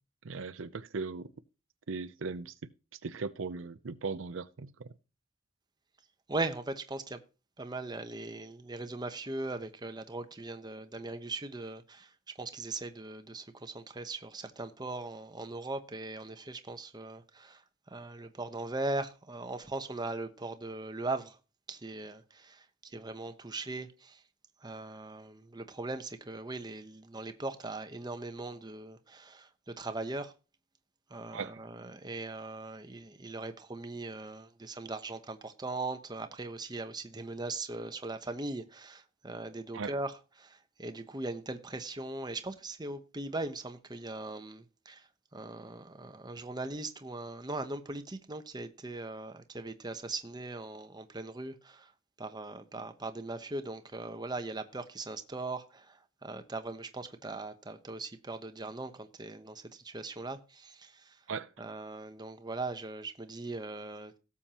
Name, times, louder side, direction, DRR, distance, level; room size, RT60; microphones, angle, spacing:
voice 1, 0.2-1.3 1.9-2.5 3.0-4.9 31.3-31.6 39.7-39.9 61.3-61.5, right 4 dB, 85° right, 0.6 m, -38 dB
voice 2, 6.3-7.2 7.6-21.4 21.7-24.2 24.6-30.3 31.1-51.9 52.2-61.2 61.6-64.2, right 2 dB, 20° right, 1.0 m, -40 dB
17.5 x 7.2 x 2.9 m
head